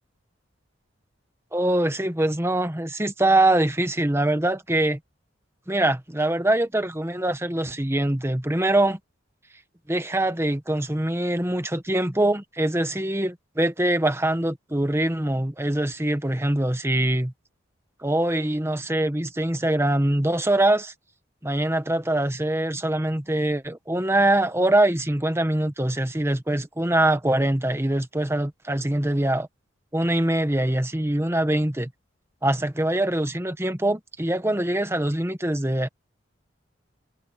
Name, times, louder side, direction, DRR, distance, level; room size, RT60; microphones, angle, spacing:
voice 1, 1.5-5.0 5.7-9.0 9.9-17.3 18.0-20.9 21.4-29.5 29.9-31.9 32.4-35.9, right 1 dB, 15° right, 1.3 m, -23 dB
head